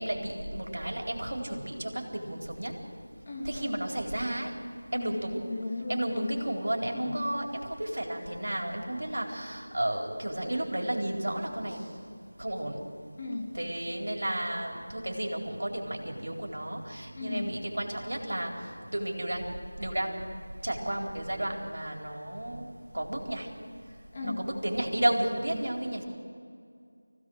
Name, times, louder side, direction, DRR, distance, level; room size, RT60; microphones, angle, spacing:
voice 1, 0.0-2.7 3.4-4.5 4.9-5.5 5.9-11.9 12.4-12.8 13.5-19.5 19.8-20.2 20.6-23.5 24.2-26.0, right 1 dB, 70° right, 1 dB, 4.1 m, -32 dB
voice 2, 3.3-3.8 4.9-6.6 6.9-7.3 13.2-13.5 17.2-17.6 24.1-24.4, left 2 dB, 25° left, -1 dB, 2.1 m, -36 dB
25.0 x 16.5 x 6.5 m, 2.3 s
figure-of-eight pair, 175°, 0 cm